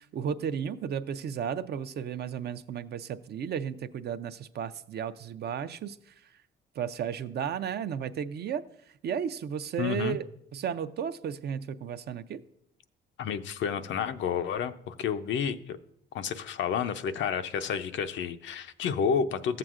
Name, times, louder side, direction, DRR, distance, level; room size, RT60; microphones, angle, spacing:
voice 1, 0.0-6.1 6.8-8.6 9.0-10.3 10.5-12.4, right 8 dB, 55° right, 10 dB, 0.5 m, -34 dB
voice 2, 9.8-10.2 13.2-15.8 16.1-19.6, left 7 dB, 70° left, 10 dB, 0.5 m, -30 dB
14.0 x 7.6 x 2.4 m, 0.73 s
cardioid pair, 90°, 20 cm